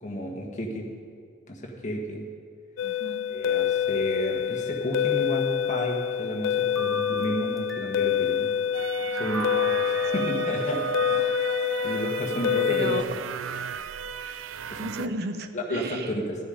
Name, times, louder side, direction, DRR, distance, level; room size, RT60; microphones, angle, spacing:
voice 1, 0.0-0.9 1.5-2.3 3.3-8.5 9.2-9.5 9.8-11.3 11.8-13.0 14.7-14.8 15.5-16.4, equal, 40° left, 0 dB, 1.5 m, -32 dB
sound 1, 2.8-13.0, left 9 dB, 75° left, 0.3 m, -27 dB
voice 2, 2.8-3.4 10.1-10.4 12.7-13.2 14.8-16.2, right 2 dB, 55° right, 8 dB, 0.7 m, -34 dB
sound 2, 5.6-6.5 6.7-8.2 9.2-10.8, equal, ahead, 0.8 m, -39 dB
sound 3, 8.7-15.1, right 7 dB, 80° right, 0.4 m, -34 dB
12.0 x 9.6 x 5.1 m, 2.2 s
head